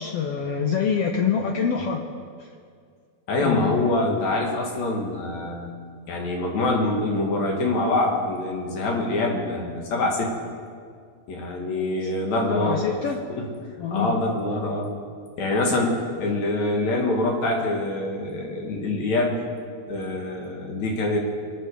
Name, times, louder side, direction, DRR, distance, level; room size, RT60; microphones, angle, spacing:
voice 1, 0.0-2.0 2.4-2.5 3.4-3.8 12.5-13.2 13.8-14.2, left 7 dB, 75° left, 2 dB, 1.4 m, -25 dB
voice 2, 3.3-5.7 6.1-10.3 11.3-12.8 13.4-13.5 13.9-14.9 15.4-19.4 19.9-21.2, left 2 dB, 55° left, 0 dB, 3.2 m, -25 dB
23.5 x 11.5 x 5.0 m, 2.1 s
omnidirectional pair, 3.9 m